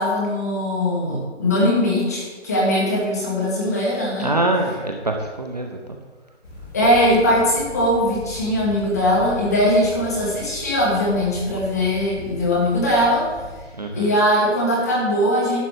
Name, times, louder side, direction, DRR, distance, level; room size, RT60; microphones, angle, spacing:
voice 1, 0.0-4.4 6.7-13.2 13.9-15.6, left 1 dB, 15° left, -5 dB, 1.7 m, -20 dB
voice 2, 4.2-6.0 13.8-14.1, right 2 dB, 35° right, 3 dB, 0.8 m, -24 dB
sound 1, 6.4-13.6, left 2 dB, 40° left, 3.2 m, -38 dB
11.5 x 4.9 x 8.1 m, 1.3 s
hypercardioid pair, 180°, 35 cm